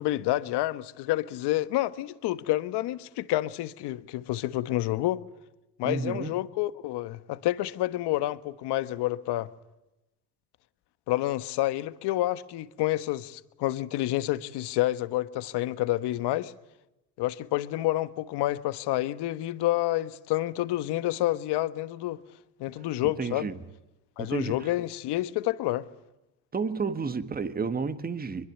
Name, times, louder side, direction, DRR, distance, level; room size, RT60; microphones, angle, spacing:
voice 1, 0.0-5.2 5.8-9.5 11.1-16.5 17.2-22.2 22.6-23.5 24.2-25.8, left 15 dB, 60° left, 1.4 m, -29 dB
voice 2, 5.8-6.3 23.2-23.6 24.2-24.7 26.5-28.5, right 5 dB, 20° right, 1.6 m, -31 dB
23.0 x 22.0 x 9.3 m
supercardioid pair, 95°, 45 cm